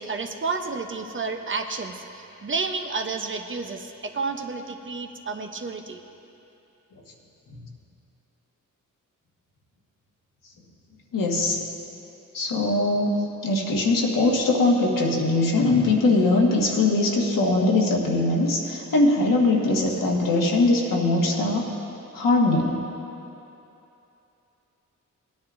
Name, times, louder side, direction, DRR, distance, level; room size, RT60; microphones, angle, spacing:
voice 1, 0.0-6.0, right 4 dB, 40° right, 5 dB, 0.8 m, -31 dB
voice 2, 11.1-11.6 12.3-21.6 22.1-22.8, left 2 dB, 80° left, -1 dB, 1.5 m, -21 dB
18.0 x 10.0 x 2.6 m, 2.9 s
cardioid pair, 75°, 32 cm